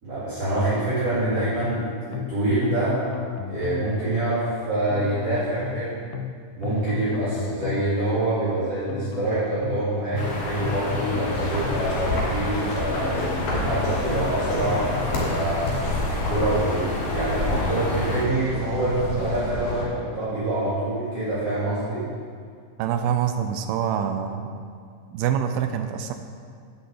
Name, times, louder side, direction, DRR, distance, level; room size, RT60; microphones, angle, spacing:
voice 1, 0.0-3.0 3.5-6.0 6.6-22.1, right 1 dB, 40° right, -12 dB, 4.7 m, -26 dB
sound 1, 0.9-1.8 2.1-2.4 2.6-3.9 4.9-5.8 6.1-6.4 6.6-7.9 8.9-9.8 10.1-10.4 10.6-11.9 12.9-13.8 14.1-14.4 14.6-15.9, left 9 dB, 85° left, 2.5 m, -34 dB
sound 2, 10.1-18.2, left 2 dB, 45° left, 1.9 m, -31 dB
sound 3, 11.3-19.8, left 1 dB, 65° left, 4.4 m, -29 dB
voice 2, 22.8-24.5 25.1-26.1, right 8 dB, 90° right, 6 dB, 2.6 m, -25 dB
10.5 x 7.9 x 8.5 m, 2.1 s
omnidirectional pair, 4.3 m